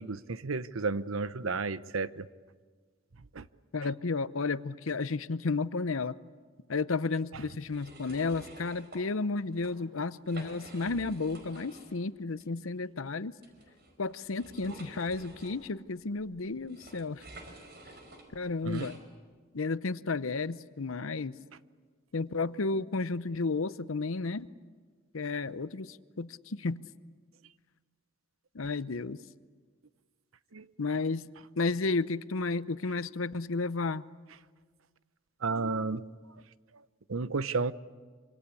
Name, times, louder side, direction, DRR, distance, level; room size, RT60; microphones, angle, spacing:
voice 1, 0.0-2.3 3.3-3.5 7.3-7.4 18.6-18.9 30.5-30.9 35.4-36.0 37.1-37.7, right 4 dB, 80° right, 15 dB, 0.8 m, -32 dB
voice 2, 3.7-6.2 6.7-13.3 14.0-17.2 18.3-19.0 19.5-21.3 22.1-24.5 25.1-26.8 28.5-29.2 30.8-31.2 31.6-34.0, left 3 dB, 80° left, 15 dB, 0.8 m, -32 dB
sound 1, 7.6-9.0 9.4-9.7 10.1-12.0 12.4-12.5 13.4-19.0, right 2 dB, 50° right, 5.0 m, -50 dB
26.0 x 25.5 x 8.5 m, 1.5 s
head